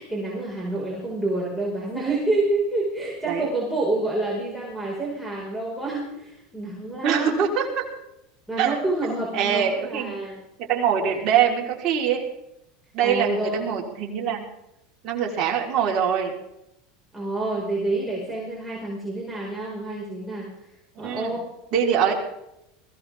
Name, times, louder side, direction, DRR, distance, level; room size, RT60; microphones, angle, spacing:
voice 1, 0.0-7.4 8.5-10.4 11.0-11.2 13.0-13.7 17.1-20.5 21.0-21.4, right 2 dB, 5° right, -5 dB, 5.3 m, -28 dB
voice 2, 7.0-7.8 8.6-8.8 9.3-10.2 10.7-12.2 12.9-14.4 15.0-16.3 21.0-21.3 21.7-22.1, right 8 dB, 45° right, -1 dB, 4.2 m, -23 dB
21.5 x 16.5 x 3.6 m, 0.86 s
supercardioid pair, 110°, 0 cm